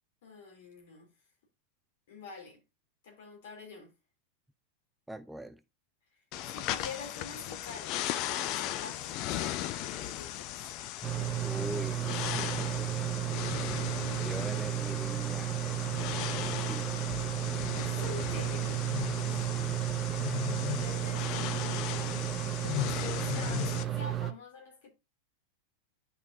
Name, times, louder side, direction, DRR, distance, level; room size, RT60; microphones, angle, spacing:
voice 1, 0.2-1.1 2.1-2.6 3.0-3.9 6.5-10.6 17.8-19.3 20.8-22.2 22.6-24.9, left 4 dB, 55° left, 3.3 m, -46 dB
voice 2, 5.1-5.6 11.4-13.7 14.1-15.6 16.2-17.1 19.3-19.8, right 1 dB, 5° right, 0.4 m, -43 dB
sound 1, 6.3-23.8, left 13 dB, 40° left, 0.6 m, -37 dB
sound 2, 11.0-24.3, right 13 dB, 25° right, 0.8 m, -33 dB
10.5 x 5.4 x 2.7 m
figure-of-eight pair, 90°, 0 cm